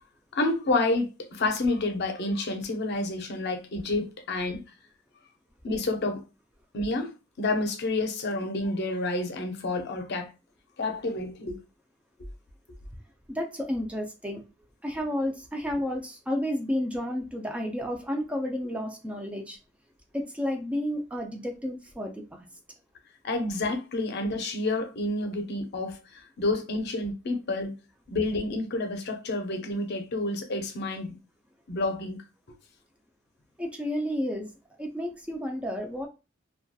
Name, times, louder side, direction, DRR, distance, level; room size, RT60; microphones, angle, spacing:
voice 1, 0.3-4.6 5.6-6.2 6.7-10.3 10.8-11.6 23.2-27.8 28.1-31.1 31.7-32.2, left 2 dB, 60° left, 0.5 m, -29 dB
voice 2, 13.3-14.4 14.8-19.6 20.1-22.5 33.6-34.5 34.8-36.1, left 1 dB, 5° right, 0.3 m, -31 dB
2.7 x 2.3 x 2.2 m
head